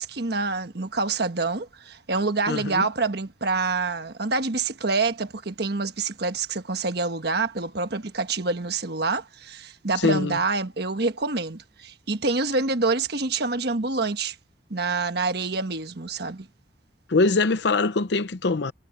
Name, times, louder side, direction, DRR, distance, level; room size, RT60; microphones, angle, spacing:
voice 1, 0.0-14.3 14.7-16.5, right 3 dB, 55° right, 1.4 m, -27 dB
voice 2, 2.5-2.8 10.0-10.4 17.1-18.7, left 3 dB, 60° left, 0.7 m, -23 dB
head